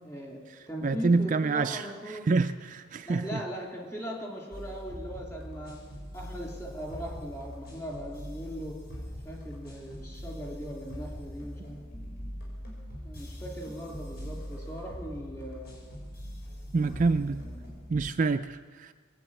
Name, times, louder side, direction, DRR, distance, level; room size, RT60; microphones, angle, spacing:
voice 1, 0.0-2.3 3.1-5.8 6.1-8.8 9.2-11.8 13.0-15.9 16.8-17.8, equal, 15° left, -1 dB, 2.6 m, -40 dB
voice 2, 0.8-3.4 16.7-17.4 17.9-18.9, right 4 dB, 40° right, 9 dB, 0.4 m, -27 dB
sound 1, 4.5-18.1, equal, 50° left, 5.5 m, -42 dB
21.0 x 7.7 x 8.6 m, 1.5 s
head